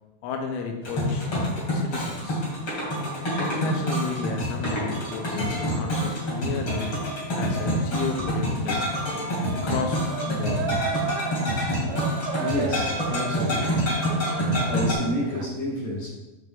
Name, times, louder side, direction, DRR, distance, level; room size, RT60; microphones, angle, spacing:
voice 1, 0.2-1.3 1.7-2.5 3.4-7.0 7.4-8.9 9.6-10.0 10.3-10.8, left 5 dB, 80° left, 3 dB, 3.0 m, -32 dB
sound 1, 0.8-14.9, equal, 35° left, 2.4 m, -27 dB
sound 2, 10.1-15.5, right 7 dB, 80° right, 2.8 m, -34 dB
voice 2, 12.3-13.9 14.3-16.1, left 1 dB, 55° left, -4 dB, 2.7 m, -30 dB
10.0 x 6.9 x 2.5 m, 1.1 s
omnidirectional pair, 6.0 m